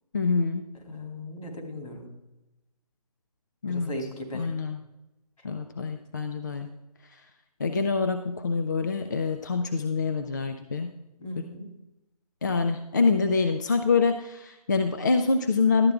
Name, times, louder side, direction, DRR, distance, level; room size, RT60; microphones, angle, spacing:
voice 1, 0.1-0.6 3.6-3.9 4.3-4.8 5.4-6.7 7.1-7.2 7.6-10.9 11.4-11.5 12.4-15.9, left 4 dB, 30° left, 6 dB, 0.4 m, -25 dB
voice 2, 0.8-2.1 3.7-4.6 11.2-11.7, left 1 dB, 60° left, 1 dB, 2.6 m, -37 dB
12.0 x 8.4 x 3.4 m, 0.98 s
figure-of-eight pair, 145°, 20 cm